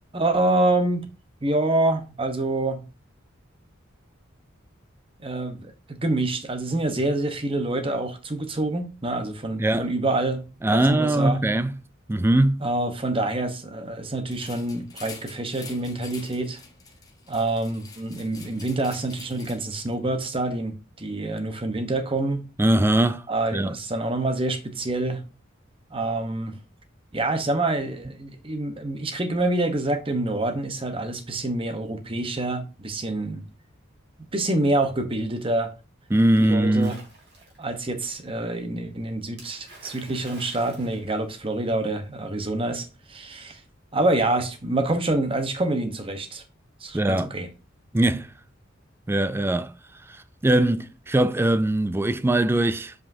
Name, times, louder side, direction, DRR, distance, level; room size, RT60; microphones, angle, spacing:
voice 1, 0.1-1.1 1.4-2.8 5.2-10.4 10.7-11.4 12.6-16.6 17.3-22.4 23.3-25.2 25.9-26.6 27.1-33.4 34.3-35.7 36.4-37.0 37.6-43.6 43.9-46.4 46.8-47.5, right 2 dB, 25° right, 1.0 m, -26 dB
voice 2, 10.6-11.7 12.1-12.6 22.6-23.3 23.5-23.7 36.1-37.0 46.9-47.3 47.9-48.3 49.1-49.7 50.1-50.2 50.4-52.9, right 1 dB, 10° right, 0.3 m, -21 dB
sound 1, 14.3-19.9, left 5 dB, 20° left, 1.1 m, -46 dB
Splash splatter, 36.8-37.7 39.4-41.8, right 2 dB, 60° right, 2.9 m, -48 dB
7.5 x 5.2 x 2.7 m
head